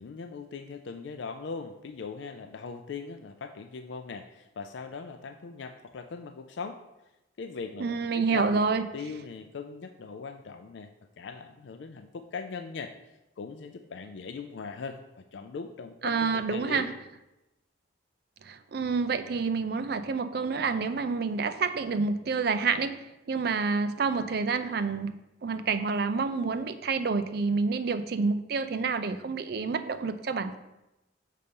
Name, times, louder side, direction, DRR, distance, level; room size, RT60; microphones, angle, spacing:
voice 1, 0.0-6.8 7.4-10.9 11.2-12.9 13.4-16.9, left 5 dB, 75° left, 7 dB, 0.4 m, -40 dB
voice 2, 7.8-8.8 16.0-16.9 18.4-25.1 25.4-30.6, right 4 dB, 55° right, 11 dB, 0.4 m, -28 dB
6.5 x 4.2 x 5.2 m, 0.96 s
head